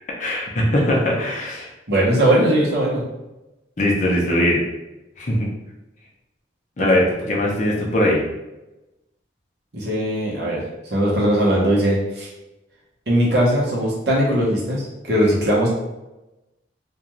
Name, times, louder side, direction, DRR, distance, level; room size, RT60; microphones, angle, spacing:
voice 1, 0.2-1.7 3.8-4.6 5.2-5.5 6.8-8.2, left 1 dB, 40° left, -1 dB, 0.5 m, -20 dB
voice 2, 1.9-3.0 6.8-6.9 9.7-10.6 10.9-12.3 13.1-15.7, right 1 dB, 65° right, -5 dB, 0.9 m, -19 dB
2.4 x 2.2 x 3.0 m, 0.98 s
head